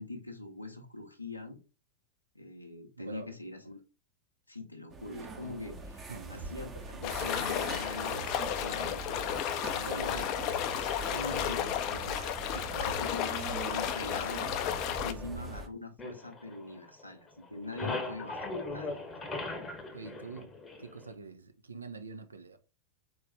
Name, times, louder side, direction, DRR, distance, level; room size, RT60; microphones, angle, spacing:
voice 1, 0.0-1.6 2.3-3.8 4.5-10.2 11.1-12.3 12.7-14.5 15.0-19.3, left 2 dB, 85° left, 0.6 m, -43 dB
voice 2, 3.0-3.3 6.1-6.5 9.8-10.6 12.5-12.9 14.9-15.3 19.9-20.5 20.8-22.6, right 4 dB, 75° right, 0.5 m, -45 dB
sound 1, 4.9-15.7, right 3 dB, 20° right, 0.7 m, -42 dB
sound 2, 7.0-15.1, left 10 dB, 40° left, 0.4 m, -33 dB
sound 3, 16.0-17.1 17.4-21.1, left 3 dB, 15° left, 0.8 m, -39 dB
3.9 x 3.0 x 3.4 m
figure-of-eight pair, 90°, 0 cm